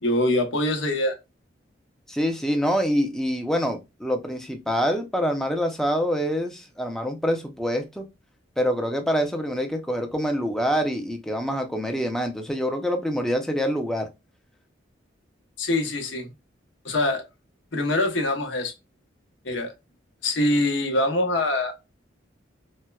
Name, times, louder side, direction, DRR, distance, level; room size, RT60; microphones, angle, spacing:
voice 1, 0.0-1.2 15.6-16.3 16.8-17.3 17.7-18.7 19.4-19.7 20.2-21.7, left 1 dB, 80° left, 0.8 m, -24 dB
voice 2, 2.1-8.0 8.6-14.1, equal, 5° left, 0.5 m, -25 dB
4.3 x 2.1 x 2.2 m
head